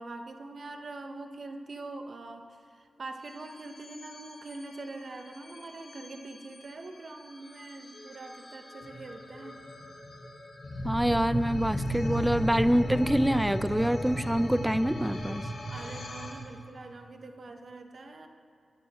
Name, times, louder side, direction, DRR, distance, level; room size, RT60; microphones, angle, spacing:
voice 1, 0.0-9.6 15.7-18.3, right 2 dB, 65° right, 5 dB, 1.3 m, -43 dB
sound 1, 3.2-16.3, equal, 70° left, 3.5 m, -36 dB
voice 2, 10.8-15.4, equal, 5° right, 15 dB, 0.5 m, -26 dB
21.5 x 12.5 x 3.8 m, 2.5 s
cardioid pair, 45°, 0 cm